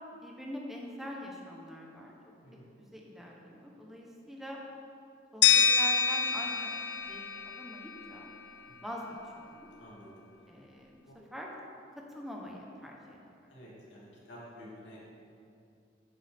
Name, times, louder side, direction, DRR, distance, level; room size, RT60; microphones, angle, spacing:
voice 1, 0.2-2.1 2.8-4.6 5.3-6.7 7.1-8.3 8.8-9.7 10.5-11.5 11.9-13.5, equal, ahead, -2 dB, 1.0 m, -44 dB
sound 1, 5.4-8.3, left 6 dB, 70° left, 0.5 m, -27 dB
voice 2, 9.8-10.3 11.1-11.2 13.5-15.0, equal, 90° left, -6 dB, 2.5 m, -50 dB
10.5 x 8.2 x 3.6 m, 2.6 s
head